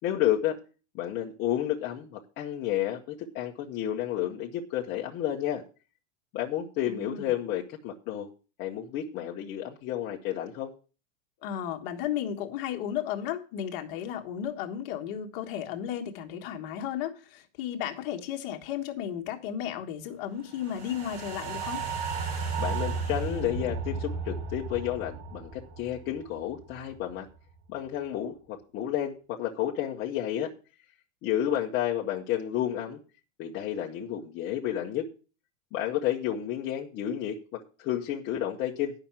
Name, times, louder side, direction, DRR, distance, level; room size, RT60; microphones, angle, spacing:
voice 1, 0.0-0.6 0.9-5.6 6.3-8.3 8.6-10.7 22.6-27.3 27.7-30.5 31.2-33.0 33.4-35.1 35.7-38.9, left 11 dB, 25° left, 0.9 m, -31 dB
voice 2, 6.8-7.3 11.4-21.8, left 10 dB, 40° left, 1.5 m, -34 dB
sound 1, 20.6-27.0 27.4-27.5, right 4 dB, 75° right, 3.8 m, -34 dB
10.5 x 5.8 x 7.3 m
supercardioid pair, 170°, 41 cm